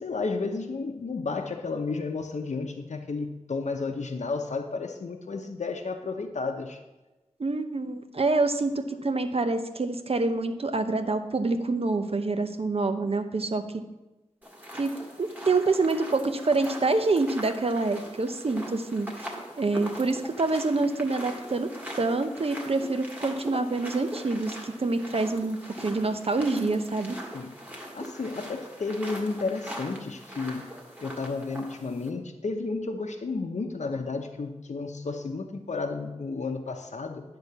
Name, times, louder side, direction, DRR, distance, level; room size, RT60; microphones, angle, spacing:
voice 1, 0.0-6.8 27.3-27.5 27.9-30.7 31.0-37.2, left 3 dB, 80° left, 3 dB, 0.7 m, -32 dB
voice 2, 7.4-13.6 14.8-14.9 15.2-21.7 22.0-27.2, right 3 dB, 55° right, 8 dB, 0.7 m, -26 dB
sound 1, 14.4-32.1, equal, 15° right, 1.7 m, -41 dB
10.0 x 3.8 x 6.8 m, 1.1 s
wide cardioid pair, 80°, 12 cm